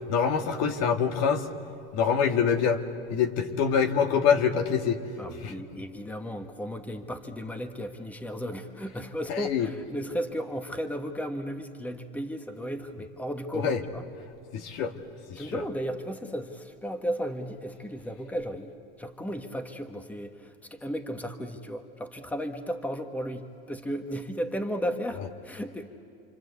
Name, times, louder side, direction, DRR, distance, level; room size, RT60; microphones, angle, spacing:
voice 1, 0.1-1.5 1.9-2.8 3.1-5.0 5.4-5.5 9.3-9.7 13.5-13.8 14.5-14.9 15.3-15.6, left 7 dB, 60° left, 5 dB, 2.2 m, -25 dB
voice 2, 5.2-14.0 15.3-25.9, equal, 5° left, 6 dB, 1.5 m, -35 dB
28.5 x 25.5 x 8.3 m, 2.6 s
supercardioid pair, 125°, 29 cm